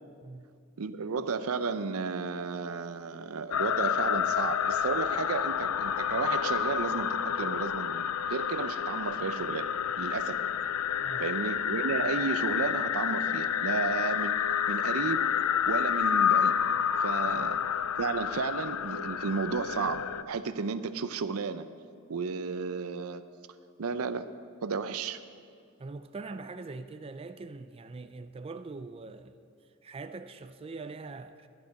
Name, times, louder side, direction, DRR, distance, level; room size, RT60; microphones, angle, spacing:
voice 1, 0.8-10.4 11.2-14.4 14.7-15.3 15.7-16.6 17.0-17.6 18.0-21.7 22.1-23.2 23.8-24.3 24.6-25.2, right 5 dB, 85° right, 0.6 m, -33 dB
sound 1, 3.5-20.2, left 8 dB, 90° left, 0.4 m, -29 dB
voice 2, 25.8-29.4 29.8-31.5, right 3 dB, 25° right, 0.4 m, -42 dB
13.0 x 11.0 x 5.2 m
head